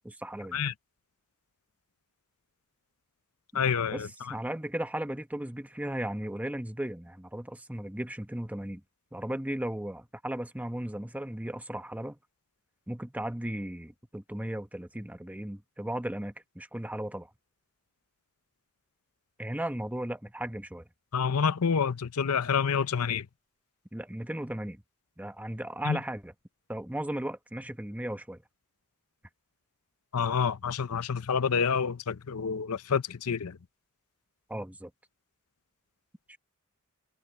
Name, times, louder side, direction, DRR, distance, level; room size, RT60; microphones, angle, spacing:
voice 1, 0.0-0.6 3.9-8.8 9.1-12.2 12.9-17.3 19.4-20.8 23.9-24.8 25.2-26.3 26.7-28.4 34.5-34.9 36.3-36.4, right 1 dB, 5° right, 1.0 m, -36 dB
voice 2, 3.5-4.3 21.1-23.3 25.8-26.0 30.1-33.6, left 6 dB, 75° left, 0.7 m, -28 dB
open air
head